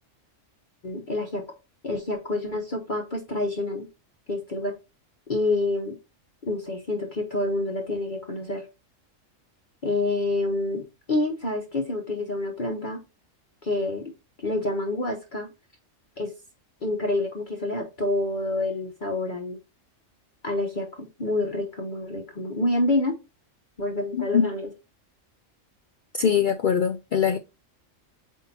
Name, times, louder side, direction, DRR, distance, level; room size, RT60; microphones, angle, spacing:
voice 1, 0.8-1.4 1.8-3.9 4.3-4.7 5.3-6.0 6.4-8.7 9.8-13.0 13.6-14.1 14.4-15.5 16.2-16.3 16.8-19.6 20.4-23.2 23.8-24.7, left 2 dB, 40° left, 1.1 m, -27 dB
voice 2, 24.1-24.5 26.2-27.4, left 7 dB, 65° left, 0.5 m, -22 dB
8.3 x 2.9 x 4.1 m
omnidirectional pair, 1.3 m